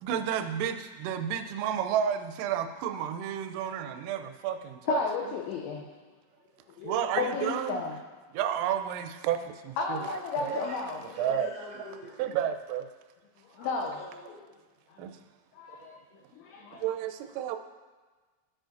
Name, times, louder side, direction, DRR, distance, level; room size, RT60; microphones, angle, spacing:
voice 1, 0.0-5.0 6.8-7.8 8.3-10.6 11.2-11.5 12.2-12.9 15.0-15.1 15.7-15.9 16.7-17.6, right 9 dB, 85° right, 7 dB, 3.2 m, -31 dB
voice 2, 4.8-5.8 6.8-7.9 9.8-11.0 13.5-13.9 14.9-15.0 15.5-15.9 16.3-16.8, left 4 dB, 85° left, 1 dB, 2.6 m, -32 dB
voice 3, 10.4-12.2 13.6-14.5, left 2 dB, 65° left, -11 dB, 4.0 m, -46 dB
13.5 x 5.0 x 2.5 m, 1.4 s
omnidirectional pair, 5.8 m